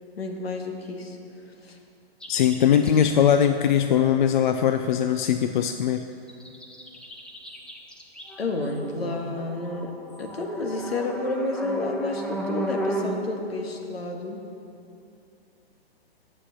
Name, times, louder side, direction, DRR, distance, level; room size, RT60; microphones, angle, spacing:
voice 1, 0.2-1.2 1.5-1.8 8.4-9.9 10.2-14.4, left 2 dB, 70° left, 2 dB, 1.7 m, -30 dB
sound 1, 2.2-3.1 6.3-13.2, right 1 dB, 5° left, 0.6 m, -34 dB
voice 2, 2.3-6.0, left 9 dB, 50° left, 8 dB, 0.5 m, -21 dB
9.7 x 7.6 x 7.0 m, 2.7 s
figure-of-eight pair, 125°, 32 cm